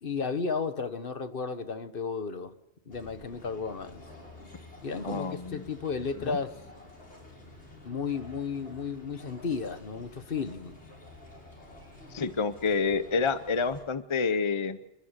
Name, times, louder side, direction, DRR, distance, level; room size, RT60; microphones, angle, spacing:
voice 1, 0.0-2.5 2.9-4.0 4.8-6.6 7.8-10.8, left 5 dB, 55° left, 1.3 m, -33 dB
sound 1, 2.9-13.8, left 2 dB, 85° left, 6.2 m, -50 dB
voice 2, 5.0-5.7 6.2-6.4 12.1-14.8, left 5 dB, 30° left, 0.7 m, -28 dB
28.5 x 12.0 x 8.2 m
omnidirectional pair, 1.1 m